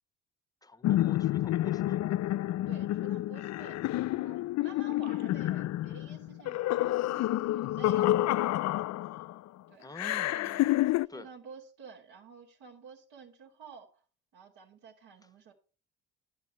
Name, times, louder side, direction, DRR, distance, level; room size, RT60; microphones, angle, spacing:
voice 1, 0.6-2.0 9.8-11.3, left 2 dB, 10° left, 1.1 m, -48 dB
sound 1, 0.8-9.4 10.0-11.1, left 15 dB, 40° left, 0.4 m, -29 dB
voice 2, 2.7-8.1 9.7-9.9 11.1-13.9 14.3-15.5, right 6 dB, 60° right, 3.1 m, -51 dB
11.0 x 6.3 x 6.0 m
hypercardioid pair, 60°, 42 cm